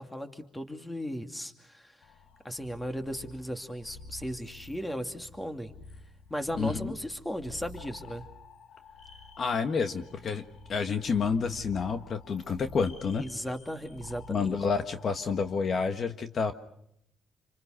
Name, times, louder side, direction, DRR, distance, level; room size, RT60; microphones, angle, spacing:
voice 1, 0.0-2.0 2.4-5.7 6.3-8.3 13.2-14.6, equal, 10° left, 6 dB, 2.6 m, -36 dB
sound 1, 2.0-15.9, left 2 dB, 80° left, 3.8 m, -50 dB
voice 2, 6.6-6.9 9.4-10.4 10.7-13.3 14.3-16.5, left 5 dB, 50° left, 8 dB, 1.6 m, -29 dB
28.0 x 26.0 x 6.6 m, 0.76 s
cardioid pair, 90°, 0 cm